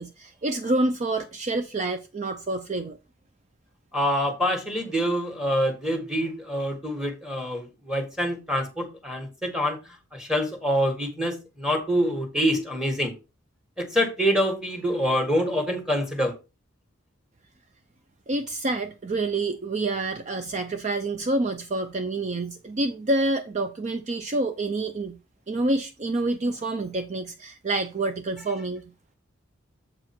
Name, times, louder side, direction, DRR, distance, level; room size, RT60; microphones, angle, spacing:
voice 1, 0.0-3.0 18.3-25.2 25.5-28.8, right 2 dB, 35° right, 0.5 m, -27 dB
voice 2, 3.9-9.8 10.1-13.1 13.8-16.3, equal, 5° right, 1.7 m, -26 dB
7.6 x 4.8 x 4.4 m
head